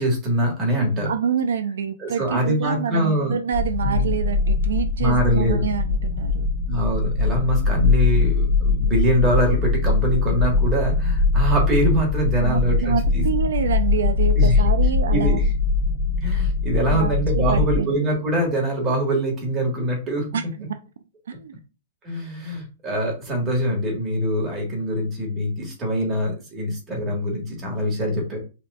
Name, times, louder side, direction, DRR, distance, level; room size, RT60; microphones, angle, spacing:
voice 1, 0.0-1.1 2.0-3.4 3.8-4.1 5.0-5.6 6.7-13.2 14.4-14.6 15.1-15.3 16.2-20.3 22.0-28.4, right 1 dB, 15° right, 1.6 m, -23 dB
voice 2, 1.1-6.5 12.4-15.5 16.9-17.1 17.5-17.9 20.3-20.7 21.3-21.6, right 7 dB, 80° right, 0.5 m, -27 dB
sound 1, 3.5-17.8, left 4 dB, 10° left, 0.7 m, -21 dB
5.8 x 2.6 x 2.4 m
hypercardioid pair, 165°, 0 cm